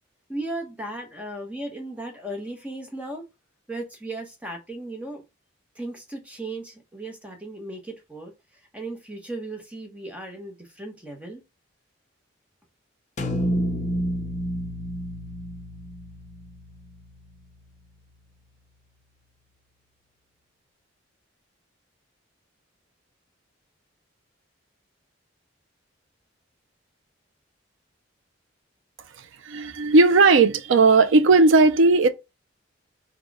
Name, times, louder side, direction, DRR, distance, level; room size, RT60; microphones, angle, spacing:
voice 1, 0.3-3.3 3.7-5.2 5.7-8.3 8.7-11.4, right 1 dB, 5° right, 0.9 m, -36 dB
sound 1, 13.2-17.4, equal, 35° left, 0.6 m, -30 dB
voice 2, 29.4-32.1, right 3 dB, 70° right, 0.5 m, -16 dB
4.2 x 2.3 x 4.6 m
head